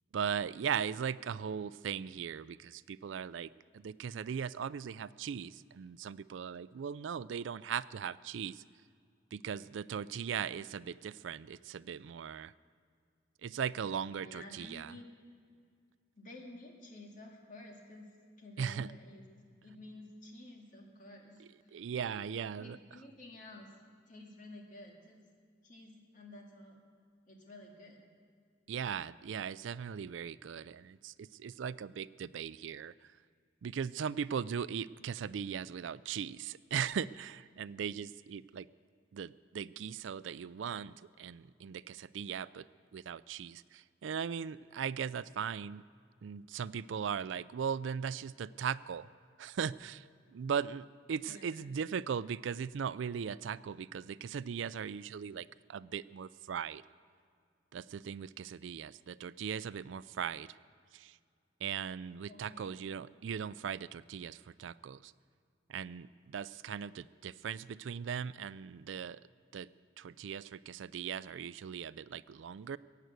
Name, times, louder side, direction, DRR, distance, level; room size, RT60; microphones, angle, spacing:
voice 1, 0.1-8.6 9.3-12.5 13.4-14.9 18.6-18.9 21.4-22.8 28.7-33.1 33.6-38.7 39.1-42.7 42.9-45.8 46.2-49.1 49.4-56.8 57.7-60.6 60.9-61.2 61.6-65.1 65.7-69.2 69.5-69.7 70.0-72.8, right 7 dB, 75° right, 17 dB, 0.4 m, -39 dB
voice 2, 14.2-15.1 16.2-18.1 18.4-23.7 24.1-25.2 25.6-26.8 27.3-28.0 51.3-51.6 62.3-62.8, left 1 dB, 40° left, 0 dB, 2.1 m, -52 dB
15.5 x 9.1 x 8.2 m, 2.2 s
head